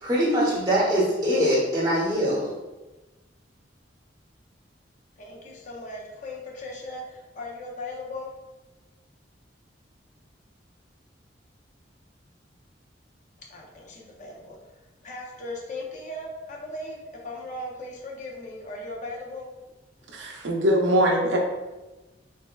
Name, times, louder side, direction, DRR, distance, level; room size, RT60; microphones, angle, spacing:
voice 1, 0.0-2.5, equal, 20° right, -9 dB, 0.8 m, -23 dB
voice 2, 5.2-8.3 13.4-14.6 15.0-19.5, left 1 dB, 40° left, -1 dB, 0.5 m, -38 dB
voice 3, 20.1-21.4, equal, 75° right, 0 dB, 0.5 m, -22 dB
3.2 x 2.0 x 2.2 m, 1.1 s
head